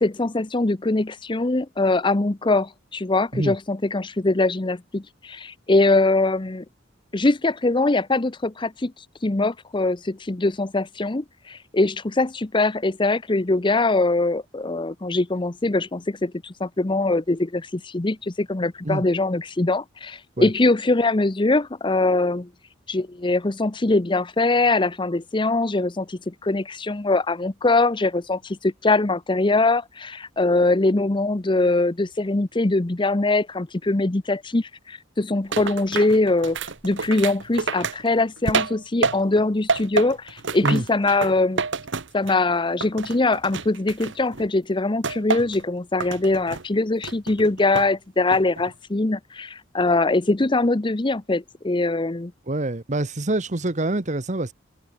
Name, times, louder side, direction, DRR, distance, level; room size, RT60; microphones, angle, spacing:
voice 1, 0.0-6.6 7.1-8.9 9.2-22.5 22.9-41.6 42.1-52.3, left 2 dB, 25° left, 0.7 m, -22 dB
sound 1, 35.5-39.4 39.7-42.5 42.8-44.4 45.0-45.6 46.0-46.6 47.0-47.9 48.3-48.7, right 4 dB, 65° right, 1.5 m, -28 dB
voice 2, 52.5-54.5, right 2 dB, 35° right, 1.2 m, -25 dB
head